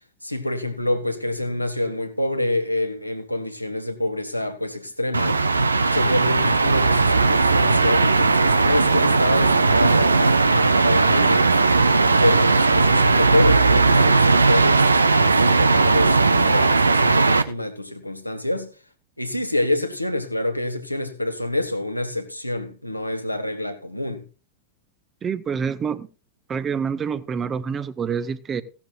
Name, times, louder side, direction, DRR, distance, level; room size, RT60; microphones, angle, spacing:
voice 1, 0.2-5.4 5.9-11.6 12.2-14.8 15.1-18.7 19.2-24.2, left 1 dB, 90° left, 1.5 m, -26 dB
sound 1, 5.1-17.4, right 3 dB, 80° right, 0.8 m, -17 dB
voice 2, 25.2-26.1 26.5-28.6, right 6 dB, 25° right, 1.1 m, -27 dB
16.5 x 12.0 x 2.5 m
figure-of-eight pair, 90°, 0 cm